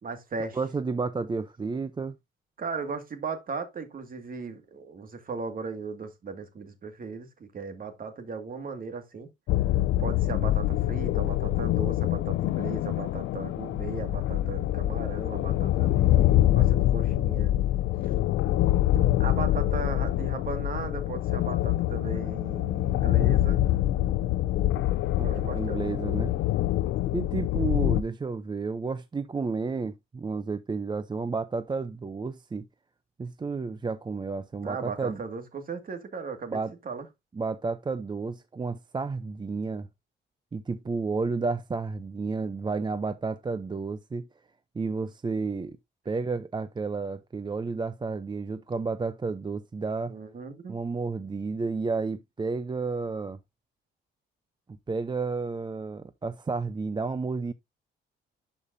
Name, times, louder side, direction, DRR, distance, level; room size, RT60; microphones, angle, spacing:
voice 1, 0.0-0.6 2.6-9.3 10.0-17.5 18.0-18.2 19.2-23.7 25.2-25.8 34.6-36.6 36.8-37.1 50.1-50.8, right 5 dB, 45° right, 2.0 m, -37 dB
voice 2, 0.5-2.1 25.2-26.3 27.1-32.7 33.2-35.2 36.5-36.7 37.3-39.9 40.5-44.3 44.7-45.8 46.1-50.1 50.7-53.4 54.7-57.5, right 4 dB, 20° right, 0.6 m, -31 dB
sound 1, 9.5-28.0, left 14 dB, 85° left, 0.5 m, -25 dB
11.0 x 5.3 x 2.7 m
cardioid pair, 90°, 20 cm